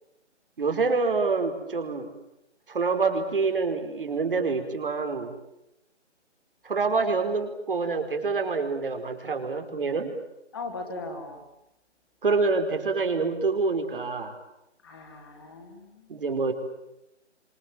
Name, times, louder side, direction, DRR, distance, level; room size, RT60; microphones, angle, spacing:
voice 1, 0.6-2.1 2.7-5.3 6.6-10.1 12.2-14.4 16.1-16.5, right 4 dB, 50° right, 6 dB, 4.8 m, -26 dB
voice 2, 10.5-11.4 14.8-16.0, left 3 dB, 20° left, 2 dB, 2.6 m, -38 dB
29.5 x 27.0 x 7.5 m, 0.87 s
hypercardioid pair, 180°, 36 cm